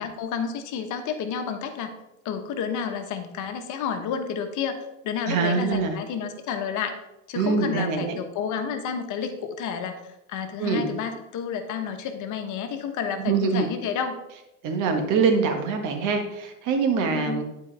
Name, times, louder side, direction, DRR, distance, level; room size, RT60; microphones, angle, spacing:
voice 1, 0.0-1.9 2.2-4.8 5.0-7.0 7.3-10.0 10.3-14.2 17.1-17.4, left 7 dB, 50° left, 6 dB, 1.1 m, -30 dB
voice 2, 5.3-5.9 7.3-8.2 10.6-10.9 13.2-13.7 14.6-17.4, right 5 dB, 55° right, 5 dB, 1.5 m, -24 dB
11.0 x 4.7 x 3.4 m, 0.90 s
hypercardioid pair, 90°, 39 cm